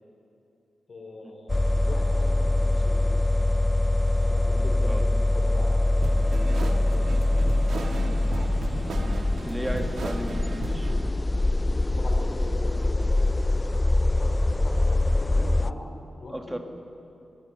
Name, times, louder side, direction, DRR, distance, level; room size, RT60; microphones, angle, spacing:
voice 1, 0.9-1.5 1.8-3.3 4.2-8.6 9.3-10.0 12.0-13.3 14.0-16.6, left 2 dB, 45° left, 1 dB, 3.8 m, -42 dB
sound 1, 1.5-15.7, left 2 dB, 20° left, 0.4 m, -24 dB
sound 2, 6.0-11.1, right 4 dB, 80° right, 1.5 m, -36 dB
voice 2, 9.4-10.9 16.3-16.6, right 1 dB, 10° right, 4 dB, 1.7 m, -34 dB
22.0 x 21.5 x 5.5 m, 2.7 s
wide cardioid pair, 125°, 0 cm